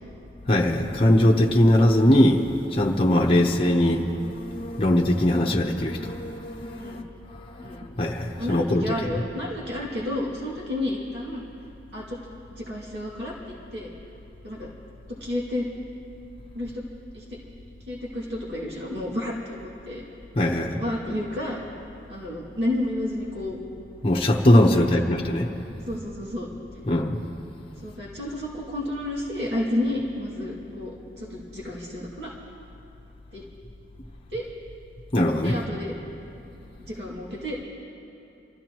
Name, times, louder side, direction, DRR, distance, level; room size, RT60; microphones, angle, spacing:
voice 1, 0.5-7.0 7.4-7.6 8.0-8.9 20.4-20.8 24.0-25.5 26.9-27.2 35.1-35.6, left 1 dB, 35° left, 0 dB, 0.9 m, -21 dB
voice 2, 8.4-11.4 11.9-12.2 12.5-13.3 13.7-13.9 14.4-14.7 15.2-15.7 16.5-16.8 17.1-17.2 17.9-20.0 20.4-21.6 22.1-23.6 24.8-24.9 25.9-26.5 27.8-32.3 33.3-33.4 34.3-34.5 35.4-35.9 36.8-37.6, left 1 dB, 70° right, -6 dB, 2.7 m, -31 dB
28.0 x 14.5 x 3.1 m, 2.8 s
head